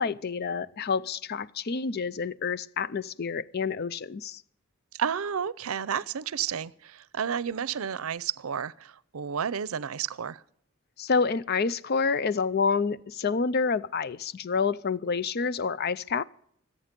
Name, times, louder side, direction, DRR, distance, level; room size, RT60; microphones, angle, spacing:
voice 1, 0.0-4.4 11.0-16.2, left 5 dB, 50° left, 0.5 m, -28 dB
voice 2, 4.9-10.4, right 7 dB, 90° right, 0.6 m, -31 dB
25.5 x 8.6 x 5.2 m
head